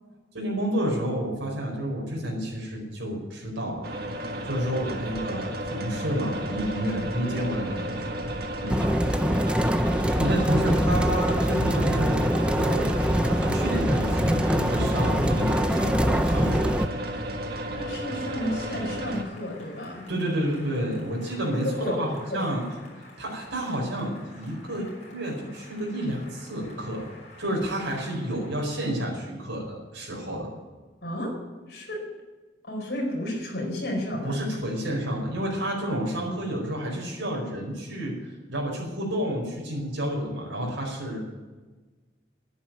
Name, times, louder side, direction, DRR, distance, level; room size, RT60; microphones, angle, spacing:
voice 1, 0.3-3.9 4.4-8.3 10.2-12.2 12.5-16.9 20.1-22.8 23.2-27.1 27.4-30.5 34.2-41.2, equal, 85° right, -2 dB, 4.7 m, -30 dB
sound 1, 3.8-19.2, equal, 55° right, 1.6 m, -33 dB
voice 2, 8.6-8.9 17.7-20.1 21.8-22.5 31.0-31.4 31.7-32.0 32.6-34.3, left 1 dB, 55° left, -1 dB, 4.5 m, -32 dB
sound 2, 8.7-16.9, equal, 5° right, 0.4 m, -24 dB
Applause, 18.0-29.5, left 2 dB, 40° left, 6.1 m, -51 dB
11.0 x 9.8 x 9.5 m, 1.3 s
head